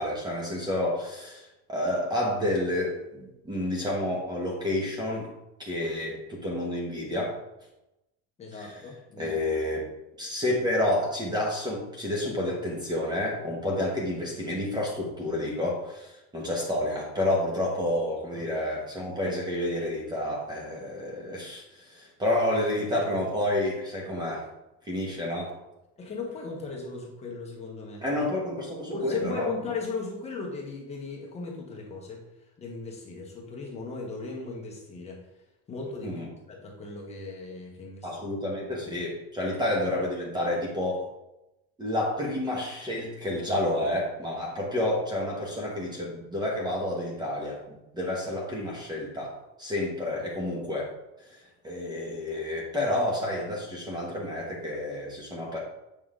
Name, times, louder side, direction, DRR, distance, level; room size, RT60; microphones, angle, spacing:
voice 1, 0.0-5.3 5.6-7.4 8.5-8.8 9.2-9.9 10.2-24.4 24.8-25.5 28.0-29.5 36.0-36.3 38.0-41.0 41.8-50.9 51.3-55.6, left 1 dB, 15° right, -1 dB, 1.2 m, -30 dB
voice 2, 8.4-9.4 18.3-18.4 26.0-28.2 28.9-32.2 32.6-35.2 35.7-36.2 36.5-38.1 38.6-38.8 39.4-39.6, left 3 dB, 20° left, -2 dB, 1.2 m, -37 dB
7.9 x 5.1 x 3.8 m, 0.92 s
cardioid pair, 170°, 32 cm